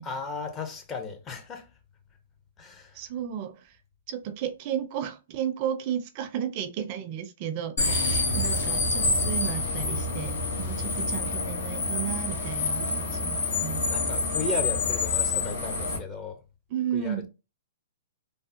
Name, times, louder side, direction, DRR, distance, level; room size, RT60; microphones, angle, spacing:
voice 1, 0.0-1.7 2.6-3.0 13.9-16.4 16.9-17.3, left 4 dB, 25° left, 0.7 m, -35 dB
voice 2, 2.9-3.7 4.1-13.8 16.7-17.3, right 9 dB, 40° right, 0.4 m, -33 dB
sound 1, 7.8-16.0, left 3 dB, 70° left, 1.1 m, -27 dB
3.3 x 2.0 x 2.8 m
hypercardioid pair, 135°, 0 cm